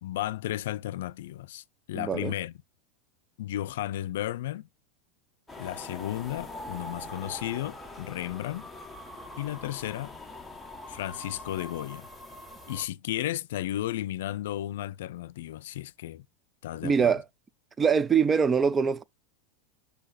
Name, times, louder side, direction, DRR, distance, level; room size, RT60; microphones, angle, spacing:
voice 1, 0.0-2.5 3.4-4.7 5.6-8.7 9.4-10.2 10.9-12.1 12.7-16.2 16.6-17.1, left 13 dB, 80° left, 0.5 m, -34 dB
voice 2, 1.9-2.3 16.8-17.2 17.8-19.0, right 6 dB, 20° right, 0.4 m, -23 dB
sound 1, 5.5-12.9, left 1 dB, 5° left, 1.1 m, -43 dB
6.3 x 2.8 x 5.7 m
supercardioid pair, 130°, 0 cm